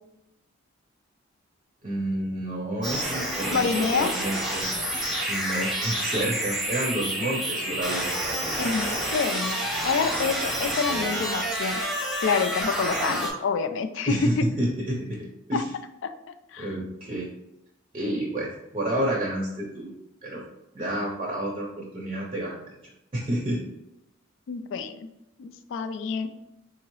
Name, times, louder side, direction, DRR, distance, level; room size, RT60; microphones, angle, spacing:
voice 1, 1.8-4.7 5.3-8.2 10.7-11.2 13.1-13.2 14.1-15.7 16.6-17.3 17.9-19.9 20.2-20.4 20.7-22.6 23.1-23.6, right 1 dB, 30° right, -2 dB, 0.6 m, -30 dB
sound 1, 2.8-13.3, right 1 dB, ahead, 0.8 m, -29 dB
voice 2, 3.5-4.1 8.6-11.8 12.2-14.5 15.5-15.6 16.0-16.1 16.5-16.7 24.5-25.1 25.4-26.3, left 5 dB, 65° left, 9 dB, 0.3 m, -27 dB
3.8 x 2.8 x 3.0 m, 0.86 s
head